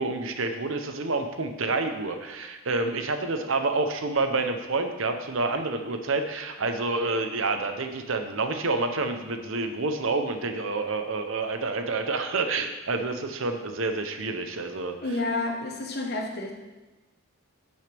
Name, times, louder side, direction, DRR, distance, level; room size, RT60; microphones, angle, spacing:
voice 1, 0.0-15.0, right 3 dB, 65° right, 7 dB, 0.8 m, -28 dB
voice 2, 15.0-16.5, left 2 dB, 50° left, 1 dB, 1.2 m, -29 dB
11.0 x 6.3 x 3.5 m, 1.1 s
head